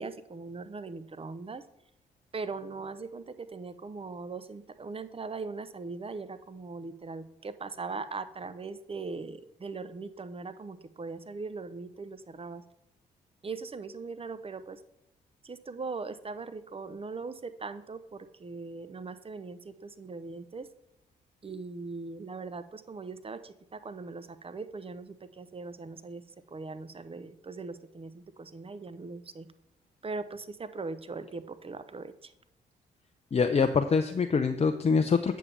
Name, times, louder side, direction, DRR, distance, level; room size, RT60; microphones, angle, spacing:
voice 1, 0.0-1.6 2.3-12.6 13.4-14.8 15.4-20.7 21.4-26.2 26.5-29.5 30.0-32.3, right 4 dB, 30° right, 12 dB, 0.8 m, -40 dB
voice 2, 33.3-35.4, left 5 dB, 30° left, 7 dB, 0.6 m, -25 dB
8.4 x 7.0 x 3.4 m, 0.82 s
hypercardioid pair, 45°, 20 cm